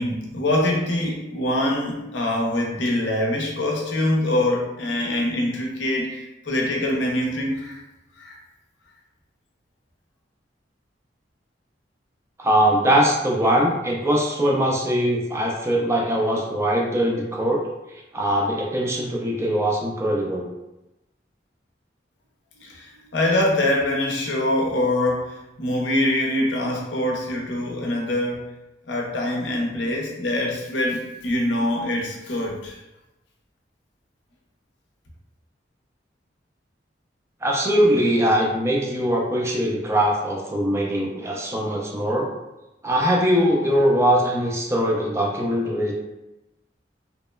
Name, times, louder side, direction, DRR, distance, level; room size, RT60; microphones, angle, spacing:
voice 1, 0.0-7.8 8.2-8.4 22.6-28.5 28.9-32.8, left 1 dB, 90° left, -1 dB, 0.6 m, -24 dB
voice 2, 12.4-17.6 18.1-20.5 37.4-42.3 42.8-45.9, equal, 15° right, -2 dB, 0.4 m, -21 dB
2.9 x 2.0 x 2.2 m, 0.95 s
head